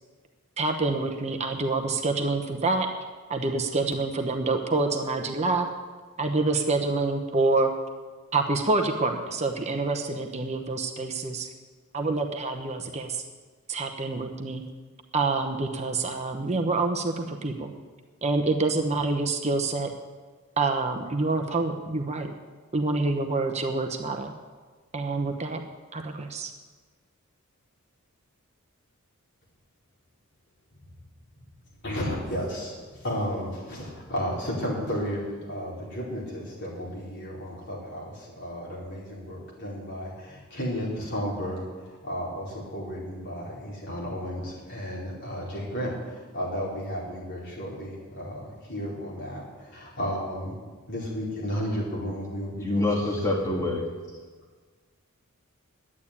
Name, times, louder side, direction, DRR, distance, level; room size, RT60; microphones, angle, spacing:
voice 1, 0.6-2.9 3.3-5.7 6.2-7.7 8.3-11.5 11.9-13.2 13.7-14.6 15.1-17.7 18.2-19.9 20.6-22.3 22.7-24.3 24.9-25.6 25.9-26.5, right 3 dB, 30° right, 5 dB, 0.9 m, -27 dB
voice 2, 31.8-50.6 50.9-53.7, equal, 55° left, -5 dB, 4.6 m, -33 dB
voice 3, 52.6-53.9, left 2 dB, 15° left, -3 dB, 2.1 m, -26 dB
11.0 x 8.6 x 9.8 m, 1.4 s
head